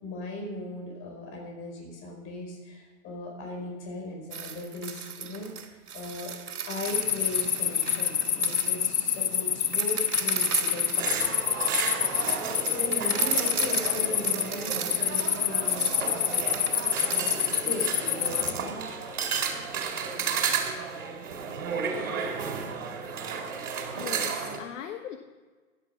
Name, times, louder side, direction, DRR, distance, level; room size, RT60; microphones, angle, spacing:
voice 1, 0.0-6.3 6.7-11.3 12.6-16.5 17.1-17.3 17.6-19.0 22.2-22.6, left 1 dB, 30° left, 1 dB, 4.8 m, -38 dB
sound 1, 4.3-17.4, right 7 dB, 85° right, 2.6 m, -35 dB
sound 2, 6.9-18.5, left 9 dB, 90° left, 1.1 m, -28 dB
sound 3, 11.0-24.6, right 6 dB, 65° right, 4.0 m, -33 dB
voice 2, 23.9-25.2, left 9 dB, 55° left, 6 dB, 1.3 m, -39 dB
16.0 x 11.0 x 5.7 m, 1.3 s
hypercardioid pair, 140°, 44 cm